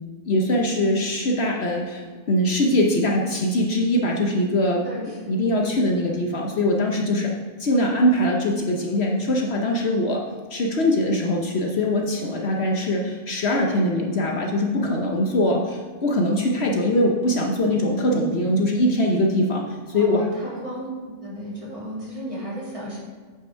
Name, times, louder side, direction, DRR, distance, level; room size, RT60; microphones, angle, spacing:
voice 1, 0.2-4.8 5.3-7.3 7.6-10.3 10.5-20.3, left 1 dB, 60° left, 0 dB, 1.1 m, -22 dB
voice 2, 4.8-5.3 19.9-20.9 21.2-23.0, equal, 25° right, -7 dB, 2.6 m, -34 dB
8.8 x 5.3 x 4.5 m, 1.5 s
omnidirectional pair, 1.3 m